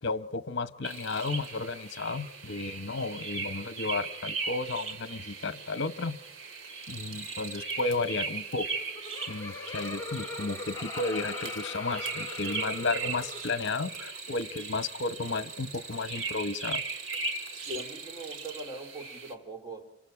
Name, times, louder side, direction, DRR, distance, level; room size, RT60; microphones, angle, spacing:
voice 1, 0.0-6.2 6.9-8.7 9.3-16.8, left 3 dB, 60° left, 0.9 m, -33 dB
sound 1, 0.8-19.3, right 4 dB, 85° right, 2.4 m, -38 dB
Laughter, 8.7-13.9, left 3 dB, 15° left, 2.5 m, -41 dB
voice 2, 17.6-19.9, right 1 dB, 20° right, 3.8 m, -41 dB
28.5 x 25.5 x 4.7 m
head